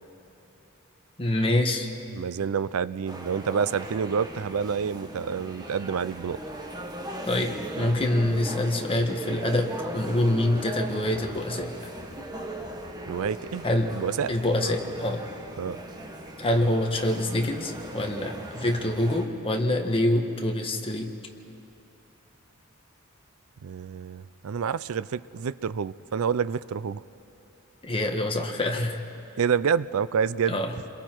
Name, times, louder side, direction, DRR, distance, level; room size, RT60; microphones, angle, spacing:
voice 1, 1.2-1.9 7.3-11.7 13.6-13.9 14.3-15.3 16.4-21.1 27.8-29.0 30.5-30.7, left 1 dB, 25° left, 3 dB, 1.4 m, -26 dB
voice 2, 2.1-6.4 13.1-13.6 13.9-14.3 15.6-15.8 23.6-27.0 29.4-30.6, right 6 dB, 75° right, 17 dB, 0.4 m, -28 dB
sound 1, 3.1-19.2, right 1 dB, 20° right, 1.5 m, -38 dB
29.0 x 22.0 x 4.6 m, 3.0 s
head